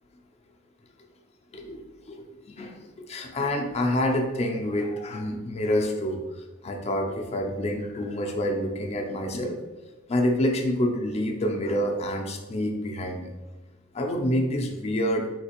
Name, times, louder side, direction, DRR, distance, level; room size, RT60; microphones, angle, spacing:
voice 1, 2.1-6.2 6.6-9.6 10.1-13.3 13.9-15.3, left 1 dB, 30° left, 3 dB, 0.4 m, -27 dB
3.9 x 2.4 x 2.9 m, 1.1 s
head